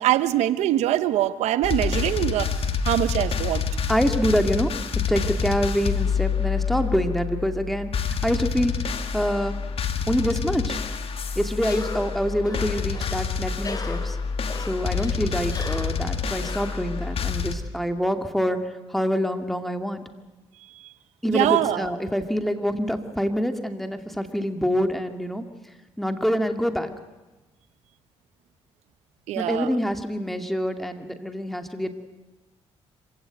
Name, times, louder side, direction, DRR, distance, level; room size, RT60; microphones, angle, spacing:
voice 1, 0.0-3.6 21.2-21.9 29.3-29.8, right 13 dB, 90° right, 14 dB, 0.8 m, -23 dB
sound 1, 1.6-17.5, left 6 dB, 60° left, 2.0 m, -27 dB
voice 2, 3.9-4.7 5.1-7.9 8.2-8.8 9.1-9.5 10.1-10.8 11.4-14.2 14.7-18.6 18.9-20.0 21.2-25.4 26.0-26.9 29.4-31.9, equal, ahead, 7 dB, 2.3 m, -26 dB
Cough, 11.6-17.4, left 3 dB, 35° left, 2.5 m, -38 dB
26.0 x 16.0 x 9.2 m, 1.1 s
cardioid pair, 70°, 11 cm